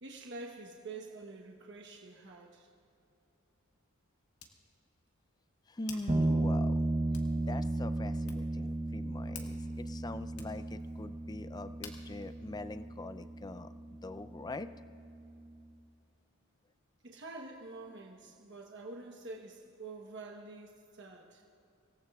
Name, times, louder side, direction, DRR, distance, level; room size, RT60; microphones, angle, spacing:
voice 1, 0.0-2.7 5.9-6.0 17.0-21.4, right 3 dB, 55° right, -1 dB, 1.1 m, -47 dB
Hands, 2.8-13.5, left 6 dB, 85° left, 1.7 m, -56 dB
voice 2, 5.7-6.8 7.4-13.7 14.0-14.7, left 2 dB, 20° left, 12 dB, 0.3 m, -43 dB
sound 1, 6.1-15.6, right 2 dB, 30° right, 0.8 m, -35 dB
26.0 x 18.0 x 2.4 m, 2.8 s
head